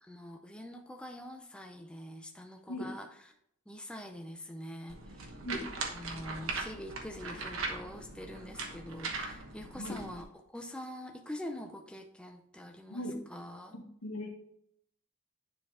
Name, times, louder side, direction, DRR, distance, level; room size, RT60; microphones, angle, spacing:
voice 1, 0.0-3.3 3.7-5.3 5.9-13.8, left 1 dB, 5° left, 4 dB, 0.5 m, -45 dB
sound 1, 4.9-10.2, right 3 dB, 65° right, 1.2 m, -40 dB
voice 2, 13.7-14.3, left 1 dB, 85° left, 2 dB, 1.5 m, -38 dB
10.0 x 4.4 x 3.5 m, 0.73 s
head